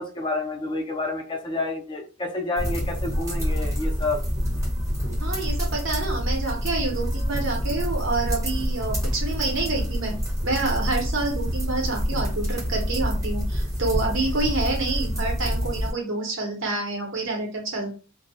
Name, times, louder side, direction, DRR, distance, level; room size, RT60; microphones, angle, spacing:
voice 1, 0.0-4.2, left 2 dB, 25° left, 2 dB, 0.5 m, -29 dB
sound 1, 2.6-15.9, equal, 15° right, 0.7 m, -27 dB
voice 2, 5.2-10.2 10.4-17.9, right 3 dB, 65° right, 0 dB, 0.8 m, -28 dB
2.2 x 2.0 x 2.7 m, 0.35 s
head